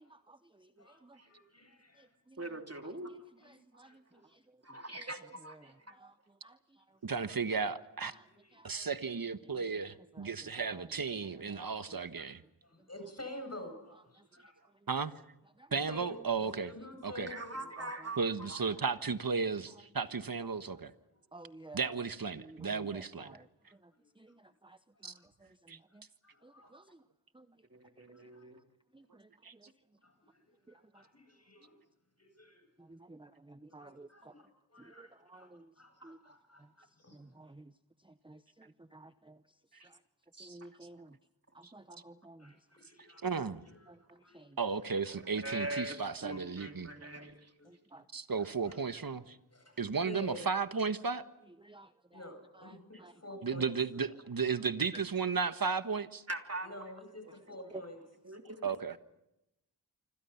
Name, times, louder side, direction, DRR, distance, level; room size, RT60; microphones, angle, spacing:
voice 1, 0.0-1.2 1.9-4.8 5.4-7.0 8.1-8.2 8.5-8.9 9.2-12.2 12.8-12.9 14.2-14.3 14.7-14.9 15.6-15.7 16.8-17.3 17.8-18.1 19.7-19.8 20.4-20.8 21.3-22.1 22.3-26.1 26.4-27.0 27.3-27.6 28.2-28.5 28.9-29.7 30.7-31.1 32.8-34.3 34.8-35.7 36.0-36.2 36.6-37.7 38.0-40.0 40.4-41.2 41.5-42.6 43.9-44.6 45.5-45.6 47.2-47.3 47.6-48.1 51.5-53.1 54.9-55.0 57.7-57.8, right 2 dB, 10° right, 11 dB, 0.9 m, -56 dB
voice 2, 0.8-2.2 3.4-3.6 3.8-4.3 7.1-7.3 8.0-8.1 8.4-8.5 12.2-12.4 12.6-14.5 15.9-17.6 21.1-21.2 23.9-24.4 25.1-25.3 25.9-26.7 28.1-28.4 30.0-31.8 32.2-32.6 33.7-35.5 35.8-37.2 42.4-43.9 44.2-44.7 47.6-47.7 48.4-48.8 49.5-49.8 50.0-50.5 52.1-54.0 56.6-58.0, left 1 dB, 35° left, 5 dB, 7.9 m, -50 dB
voice 3, 2.4-3.1 4.6-5.9 17.3-18.6 27.7-28.6 40.4-40.5 45.1-47.5 49.8-50.0 56.3-56.7 58.3-58.6, right 2 dB, 35° right, 4 dB, 3.1 m, -42 dB
voice 4, 7.0-8.1 8.6-12.4 14.9-15.1 15.7-16.7 17.0-17.3 18.2-20.9 21.7-23.4 25.0-25.1 25.7-25.8 29.4-29.5 40.5-40.6 41.6-41.7 43.2-43.6 44.6-46.9 48.1-49.4 49.8-51.2 53.4-56.2 58.6-59.0, right 5 dB, 55° right, 11 dB, 1.4 m, -34 dB
28.5 x 25.5 x 5.8 m, 0.88 s
cardioid pair, 45°, 42 cm